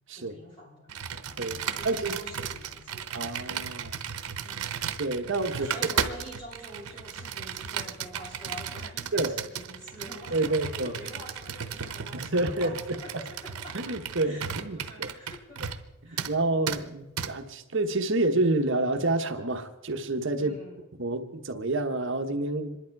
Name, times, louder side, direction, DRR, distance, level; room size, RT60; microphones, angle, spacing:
voice 1, 0.1-1.4 1.6-3.3 4.4-4.8 5.5-15.8 16.0-16.3 20.4-20.9, equal, 20° left, -3 dB, 5.8 m, -46 dB
Computer keyboard, 0.9-15.9 16.2-16.3 16.7-16.8 17.2-17.3, right 7 dB, 80° right, 0.9 m, -35 dB
voice 2, 1.4-2.2 3.1-4.0 5.0-5.7 9.1-9.4 10.3-11.0 12.1-13.2 13.7-15.1 16.3-20.6 21.0-22.8, right 2 dB, 55° right, 6 dB, 1.1 m, -28 dB
26.5 x 11.5 x 4.7 m, 0.99 s
head